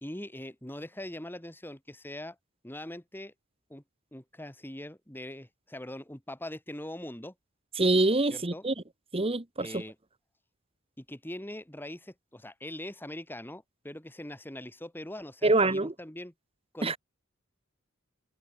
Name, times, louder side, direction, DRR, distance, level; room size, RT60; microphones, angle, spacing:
voice 1, 0.0-2.4 2.6-3.3 3.7-3.8 4.1-7.3 8.3-8.6 9.6-10.0 11.0-16.3 16.7-17.0, left 1 dB, 10° left, 2.1 m, -42 dB
voice 2, 7.8-8.7 9.1-9.8 15.4-15.9 16.8-17.0, right 2 dB, 30° right, 1.3 m, -25 dB
head